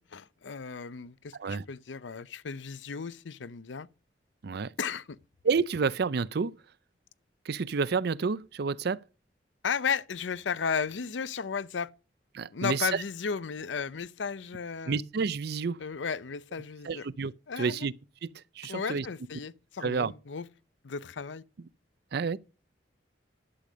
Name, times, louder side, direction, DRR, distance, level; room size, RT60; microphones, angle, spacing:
voice 1, 0.0-3.9 4.8-5.2 9.6-11.9 12.5-15.0 15.8-17.1 17.5-17.9 18.7-20.5 20.8-21.4, left 6 dB, 85° left, 0.6 m, -34 dB
voice 2, 5.4-6.5 7.5-9.0 12.3-13.0 14.9-15.8 16.8-17.9 18.2-19.1 19.8-20.1 22.1-22.4, right 5 dB, 60° right, 0.5 m, -29 dB
11.5 x 8.4 x 5.1 m
head